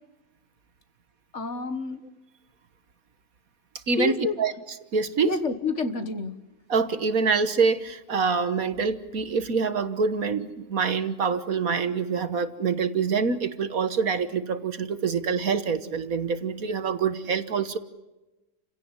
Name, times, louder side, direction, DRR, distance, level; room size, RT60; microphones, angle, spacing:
voice 1, 1.3-2.0 4.0-4.4 5.2-6.3, left 4 dB, 45° left, 9 dB, 1.7 m, -28 dB
voice 2, 3.9-4.5 4.9-5.4 6.7-17.8, right 5 dB, 55° right, 11 dB, 1.6 m, -26 dB
29.5 x 17.0 x 9.8 m, 1.0 s
omnidirectional pair, 1.8 m